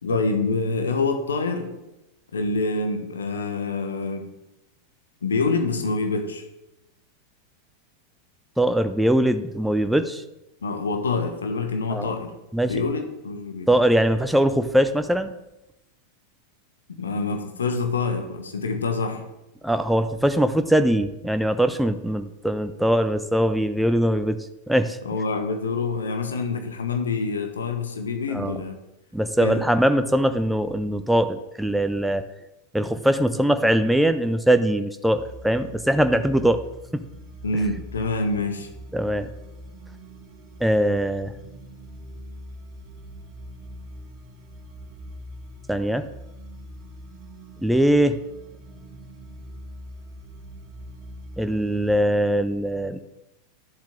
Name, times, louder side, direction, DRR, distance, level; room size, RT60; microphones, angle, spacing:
voice 1, 0.0-1.8 2.3-4.3 5.2-6.4 10.6-12.3 12.6-13.7 16.9-19.2 25.0-28.8 29.4-29.6 37.4-38.7, left 3 dB, 70° left, 6 dB, 1.2 m, -26 dB
voice 2, 8.6-10.2 11.9-12.1 12.5-12.9 13.7-15.3 19.6-24.4 24.7-25.0 28.3-28.6 29.1-32.2 32.7-36.6 38.9-39.3 40.6-41.3 45.7-46.1 47.6-48.2 51.4-53.0, right 1 dB, ahead, 9 dB, 0.5 m, -21 dB
sound 1, 35.1-52.0, equal, 35° right, 1.5 m, -42 dB
11.0 x 7.2 x 3.7 m, 0.92 s
figure-of-eight pair, 90°, 0 cm